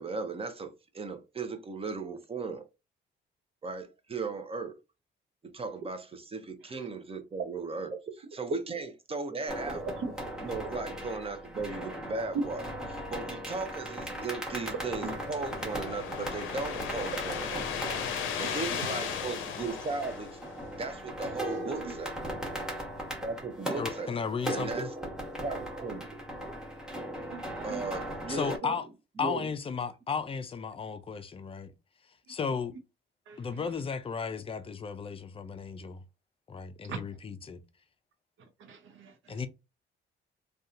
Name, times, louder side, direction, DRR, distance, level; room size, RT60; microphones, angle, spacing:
voice 1, 0.0-2.7 3.6-4.7 5.5-9.9 10.4-12.6 12.9-17.6 18.4-20.3 20.8-22.1 23.2-24.1 24.5-25.1 25.4-26.2 27.6-28.8 29.2-29.5, right 4 dB, 30° right, 0.6 m, -37 dB
sound 1, 9.5-28.6, equal, 5° right, 1.1 m, -38 dB
voice 2, 9.8-10.1 15.0-15.2 18.4-18.8 21.3-22.0 24.7-24.9 27.3-27.8 28.6-28.7 33.3-33.7 36.8-37.0 38.4-39.4, right 5 dB, 80° right, 0.7 m, -41 dB
sound 2, 14.4-20.9, left 8 dB, 80° left, 0.6 m, -37 dB
voice 3, 23.8-24.9 28.3-28.8 29.2-31.7 32.3-32.7 33.4-36.0 36.5-37.6 39.3-39.5, left 5 dB, 30° left, 0.4 m, -34 dB
2.7 x 2.3 x 2.5 m
cardioid pair, 90°, 20 cm